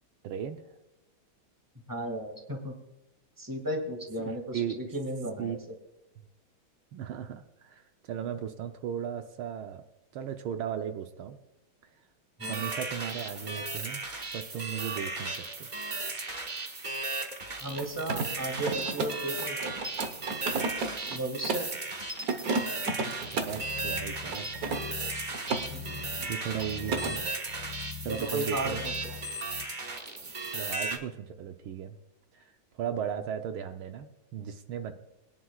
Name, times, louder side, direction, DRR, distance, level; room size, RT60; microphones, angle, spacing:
voice 1, 0.2-0.6 4.2-4.8 5.4-5.6 6.9-9.8 10.1-11.4 12.5-14.0 14.3-15.7 23.3-24.8 25.4-25.8 26.3-27.3 28.0-28.8 30.3-32.0 32.3-34.9, right 9 dB, 75° right, 7 dB, 1.6 m, -37 dB
voice 2, 1.9-2.7 3.4-5.6 12.4-12.7 17.6-19.7 21.1-21.7 25.7-26.1 28.1-29.2, right 1 dB, 10° right, 3 dB, 1.9 m, -35 dB
sound 1, 12.4-31.0, right 3 dB, 25° right, 1.1 m, -36 dB
Mechanisms, 17.7-21.8 22.2-23.7 24.3-25.7 26.0-26.3 26.6-27.2, right 4 dB, 50° right, 1.4 m, -33 dB
sound 2, 23.2-29.7, left 9 dB, 65° left, 1.9 m, -44 dB
22.0 x 10.5 x 2.4 m, 0.98 s
omnidirectional pair, 2.4 m